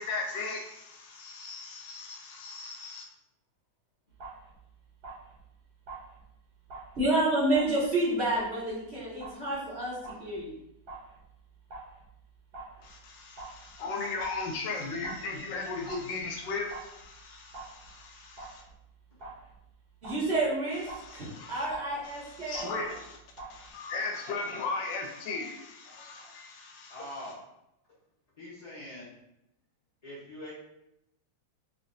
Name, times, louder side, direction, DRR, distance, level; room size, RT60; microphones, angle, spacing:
voice 1, 0.0-3.1 12.8-18.6 20.9-21.7 22.1-23.2 23.5-27.1, left 3 dB, 75° left, 2 dB, 1.2 m, -37 dB
sound 1, 4.1-23.7, right 3 dB, 60° right, 1.4 m, -48 dB
voice 2, 7.0-10.5 20.0-20.8 21.1-22.7, right 2 dB, 40° right, -8 dB, 1.0 m, -29 dB
voice 3, 26.9-27.5 28.4-29.1 30.0-30.5, left 1 dB, 60° left, -9 dB, 0.4 m, -43 dB
3.7 x 3.2 x 2.6 m, 0.85 s
omnidirectional pair, 2.1 m